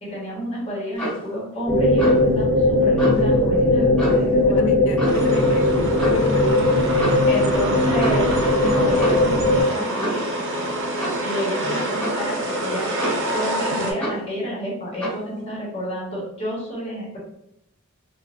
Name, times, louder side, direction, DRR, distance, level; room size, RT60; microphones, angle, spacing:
voice 1, 0.0-4.6 7.2-8.3 8.6-10.2 11.2-12.9 13.3-17.2, equal, 30° left, -6 dB, 1.1 m, -30 dB
Clock, 1.0-1.3 2.0-2.3 3.0-3.2 4.0-4.3 5.0-5.3 6.0-6.2 7.0-7.3 8.0-8.3 9.0-9.3 10.0-10.3 11.0-11.3 12.0-12.3 13.0-13.4 14.0-14.3 15.0-15.2, right 1 dB, 5° left, 1.1 m, -28 dB
sound 1, 1.7-9.6, left 2 dB, 10° right, 1.4 m, -19 dB
voice 2, 4.4-6.9 11.6-11.9 13.7-13.9, left 2 dB, 65° left, 6 dB, 0.4 m, -29 dB
sound 2, 5.0-13.9, right 1 dB, 60° right, 0.6 m, -27 dB
3.1 x 2.4 x 2.5 m, 0.78 s
head